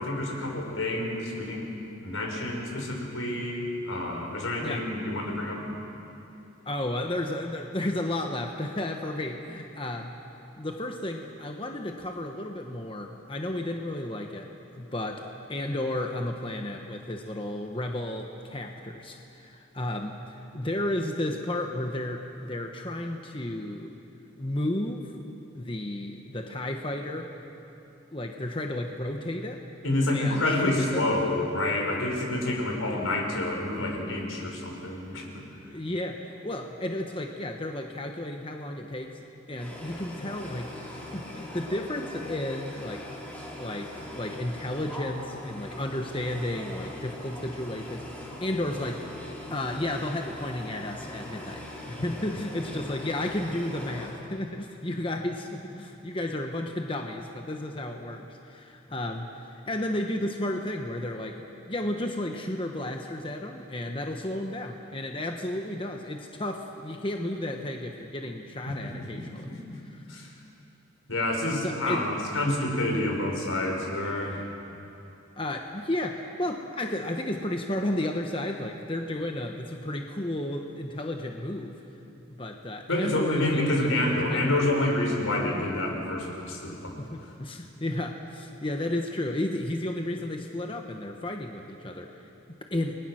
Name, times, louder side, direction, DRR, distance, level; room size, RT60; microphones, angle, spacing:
voice 1, 0.0-1.6 2.0-5.7 29.8-35.4 68.7-68.9 69.2-69.3 69.5-69.6 70.1-70.3 71.1-74.5 82.9-86.9, left 1 dB, 85° left, 1 dB, 5.3 m, -28 dB
voice 2, 6.6-10.2 10.6-14.5 14.7-15.2 15.5-24.0 24.4-25.2 25.5-27.3 28.1-29.6 30.1-31.1 33.8-33.9 35.5-40.8 41.1-43.1 43.6-49.0 49.5-61.4 61.7-69.5 69.9-70.0 71.6-72.1 75.4-81.8 82.3-84.5 87.0-92.3 92.7-93.0, left 1 dB, 25° left, 3 dB, 1.1 m, -33 dB
sound 1, 39.6-54.1, left 1 dB, 5° left, 3.7 m, -41 dB
30.0 x 21.5 x 6.4 m, 2.8 s
head